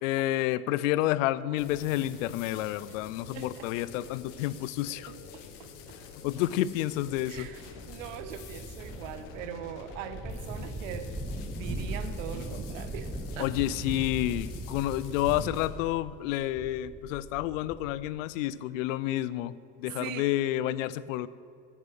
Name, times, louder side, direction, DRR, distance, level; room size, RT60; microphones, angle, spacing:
voice 1, 0.0-5.1 6.2-7.5 13.4-21.3, left 14 dB, 85° left, 18 dB, 0.5 m, -30 dB
sound 1, 1.6-15.7, left 6 dB, 70° left, 1.4 m, -47 dB
voice 2, 3.3-3.7 5.1-6.0 7.3-11.1 11.4-13.5 19.8-20.3, right 10 dB, 80° right, 10 dB, 0.9 m, -41 dB
sound 2, 7.3-18.1, right 1 dB, 5° right, 0.5 m, -39 dB
10.5 x 5.6 x 8.1 m, 2.4 s
supercardioid pair, 125°, 38 cm